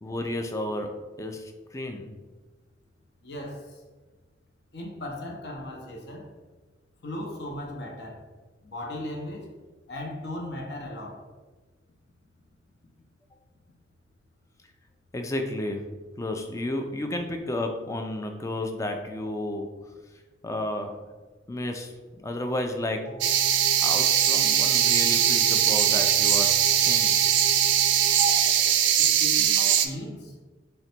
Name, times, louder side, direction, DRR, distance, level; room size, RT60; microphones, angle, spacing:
voice 1, 0.0-2.1 15.1-15.8 16.2-19.7 20.4-21.0 21.5-23.1 23.8-26.5 26.8-27.2, left 1 dB, 15° left, 4 dB, 0.3 m, -32 dB
voice 2, 3.2-3.6 4.7-6.3 7.0-8.2 8.6-9.5 9.9-11.2 29.0-30.4, left 1 dB, 60° left, 0 dB, 0.7 m, -37 dB
sound 1, 23.1-29.5, right 3 dB, 5° right, 0.8 m, -37 dB
sound 2, 23.2-29.9, right 10 dB, 80° right, 0.3 m, -21 dB
3.8 x 2.2 x 4.2 m, 1.3 s
head